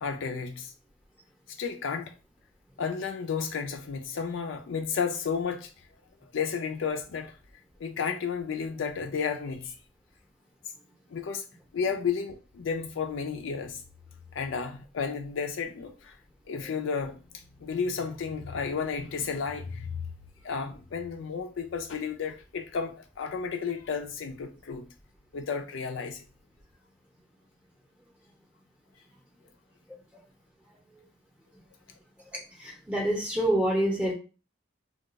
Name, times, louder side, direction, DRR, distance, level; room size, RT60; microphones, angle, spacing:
voice 1, 0.0-0.7 1.5-2.1 2.8-5.7 6.2-7.3 7.8-9.7 11.1-11.4 11.7-13.8 14.3-16.2 16.5-20.0 20.4-24.9 25.3-26.2, left 6 dB, 70° left, 0.4 m, -32 dB
voice 2, 32.6-34.1, right 1 dB, 5° right, 0.6 m, -27 dB
2.3 x 2.3 x 3.9 m
head